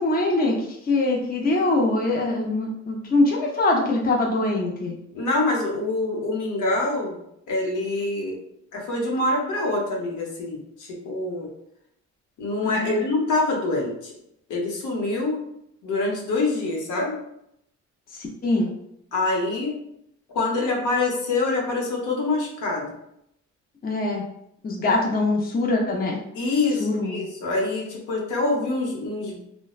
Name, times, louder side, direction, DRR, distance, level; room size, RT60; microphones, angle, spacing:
voice 1, 0.0-5.0 12.6-13.0 18.1-18.7 23.8-24.2 24.6-26.2 26.8-27.3, left 2 dB, 30° left, -1 dB, 0.6 m, -23 dB
voice 2, 5.1-7.2 7.5-8.4 8.7-11.5 12.4-14.1 14.5-15.4 15.8-17.2 19.1-19.8 20.3-22.9 26.3-29.4, left 2 dB, 80° left, -2 dB, 0.9 m, -25 dB
3.0 x 2.1 x 2.3 m, 0.77 s
cardioid pair, 90°, 30 cm